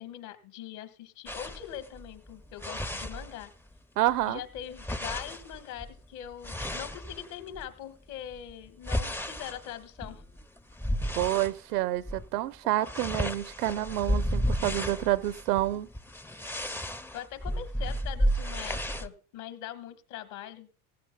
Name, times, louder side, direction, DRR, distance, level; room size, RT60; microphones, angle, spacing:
voice 1, 0.0-3.5 4.3-10.2 17.1-20.7, left 11 dB, 65° left, 1.8 m, -42 dB
sound 1, 1.3-3.8 4.1-7.7 8.2-11.6 12.0-12.3 12.5-19.1, equal, 5° left, 0.4 m, -33 dB
voice 2, 4.0-4.4 11.2-15.9, right 15 dB, 80° right, 0.8 m, -28 dB
16.5 x 15.5 x 2.3 m
hypercardioid pair, 80°, 45 cm